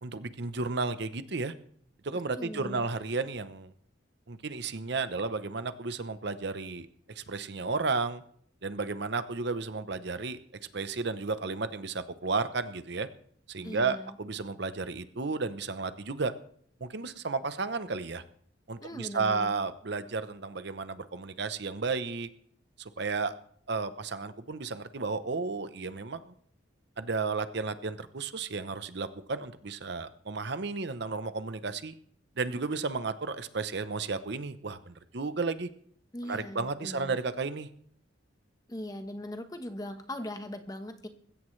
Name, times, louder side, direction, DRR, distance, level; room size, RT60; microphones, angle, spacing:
voice 1, 0.0-1.5 2.0-3.7 4.3-6.9 7.2-8.2 8.6-10.4 10.7-13.1 13.5-16.3 16.8-18.2 18.7-22.3 22.8-23.3 23.7-26.3 27.0-31.9 32.4-35.7 36.3-37.7, right 4 dB, 60° right, 12 dB, 0.8 m, -33 dB
voice 2, 2.4-2.9 13.6-14.2 18.8-19.5 36.1-37.2 38.7-41.1, left 1 dB, 20° left, 7 dB, 1.1 m, -40 dB
20.5 x 16.0 x 3.2 m, 0.63 s
head